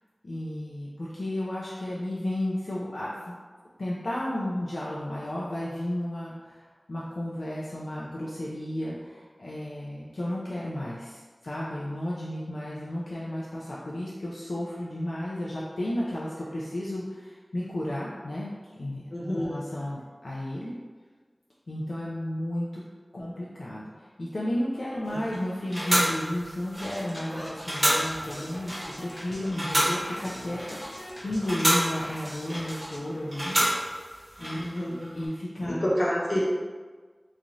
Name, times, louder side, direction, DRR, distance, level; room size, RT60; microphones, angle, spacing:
voice 1, 0.2-3.3 3.8-6.6 6.9-19.0 19.4-20.8 21.7-22.8 23.1-33.6 34.4-34.7 35.1-35.9, left 1 dB, 85° left, -7 dB, 0.4 m, -33 dB
voice 2, 19.1-19.6 34.5-35.1 35.6-36.4, equal, 60° left, -6 dB, 0.8 m, -28 dB
sound 1, 25.0-35.3, equal, 40° right, 1.3 m, -30 dB
sound 2, 26.7-33.0, equal, 30° left, 0.8 m, -42 dB
3.0 x 2.4 x 2.6 m, 1.4 s
wide cardioid pair, 55°, 0 cm